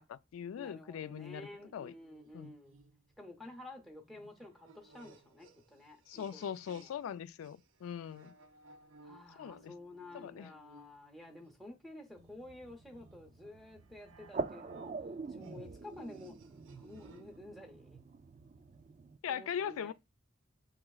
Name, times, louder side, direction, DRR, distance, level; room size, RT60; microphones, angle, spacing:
voice 1, 0.0-1.9 2.3-2.5 6.1-8.3 9.4-9.7 10.1-10.5 19.2-19.9, left 8 dB, 80° left, 0.3 m, -41 dB
voice 2, 0.5-2.8 3.2-7.0 9.0-14.9 15.2-16.4 16.7-18.0 19.2-19.9, left 1 dB, ahead, 0.6 m, -51 dB
sound 1, 1.4-7.1 7.4-17.4, right 2 dB, 80° right, 0.6 m, -62 dB
sound 2, 12.2-19.2, right 4 dB, 35° right, 0.3 m, -45 dB
7.2 x 2.9 x 2.3 m
head